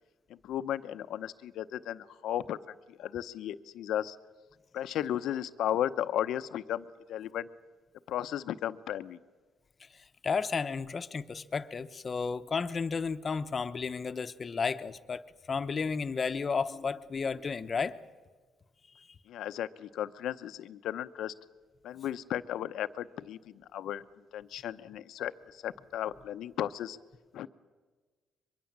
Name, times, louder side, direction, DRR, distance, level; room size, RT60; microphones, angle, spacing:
voice 1, 0.4-2.6 2.9-4.2 4.7-7.5 8.1-9.2 19.3-21.3 21.8-24.0 24.3-27.0 27.3-27.5, left 11 dB, 80° left, 13 dB, 0.8 m, -35 dB
voice 2, 10.2-18.0 19.0-19.1, left 5 dB, 40° left, 11 dB, 0.9 m, -33 dB
23.0 x 22.5 x 7.4 m, 1.4 s
cardioid pair, 90°, 0 cm